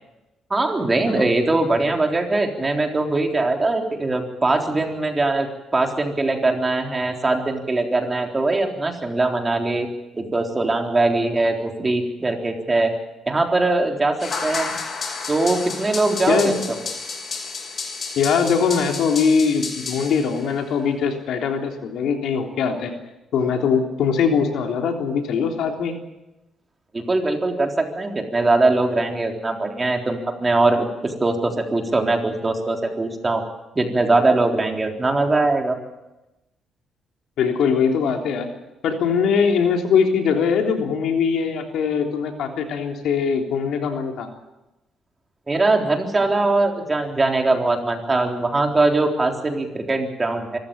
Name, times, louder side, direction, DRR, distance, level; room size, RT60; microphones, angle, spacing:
voice 1, 0.5-9.9 10.1-12.9 13.3-14.8 15.3-16.5 26.9-33.4 33.8-35.8 45.5-50.6, right 2 dB, 25° right, 3 dB, 3.8 m, -21 dB
sound 1, 14.2-20.6, left 4 dB, 50° left, 3.7 m, -31 dB
voice 2, 18.2-22.9 23.3-25.9 37.4-38.5 38.8-44.3, left 6 dB, 80° left, 3 dB, 3.4 m, -21 dB
25.0 x 14.5 x 8.8 m, 0.99 s
cardioid pair, 90°, 0 cm